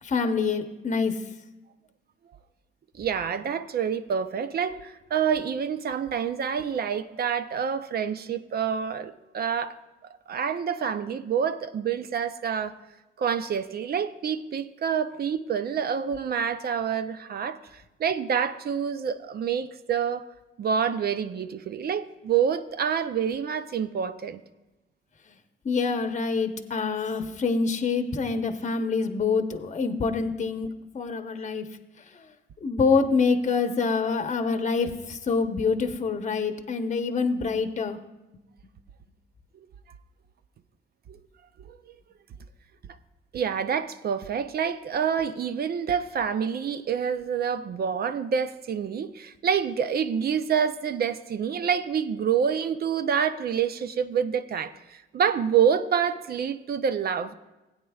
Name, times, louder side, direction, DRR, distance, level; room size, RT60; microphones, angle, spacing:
voice 1, 0.0-1.2 25.6-30.7 30.9-31.6 32.1-32.3 32.6-38.0, left 4 dB, 35° left, 0.9 m, -26 dB
voice 2, 2.9-9.8 10.3-12.8 13.2-20.3 20.6-24.4 41.1-41.2 41.6-42.0 43.3-57.3, right 7 dB, 50° right, 0.6 m, -27 dB
17.0 x 8.9 x 2.3 m
cardioid pair, 90°, 20 cm